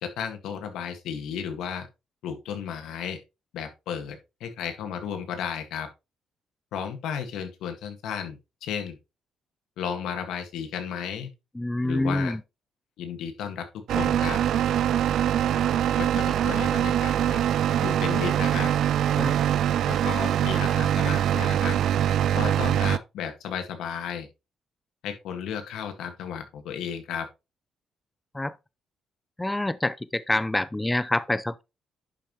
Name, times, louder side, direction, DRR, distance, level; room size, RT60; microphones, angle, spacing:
voice 1, 0.0-1.9 2.2-3.2 3.5-5.9 6.7-9.0 9.8-11.3 11.8-12.4 13.0-13.7 13.9-14.4 16.0-17.4 17.8-18.7 19.9-21.8 22.3-24.3 25.0-27.3, left 8 dB, 85° left, 1.7 m, -33 dB
voice 2, 11.6-12.4 19.2-19.4 28.3-28.6 29.4-31.6, left 1 dB, 10° left, 0.4 m, -26 dB
sound 1, 13.9-23.0, right 10 dB, 75° right, 0.3 m, -23 dB
11.0 x 5.5 x 3.0 m
cardioid pair, 90°, 0 cm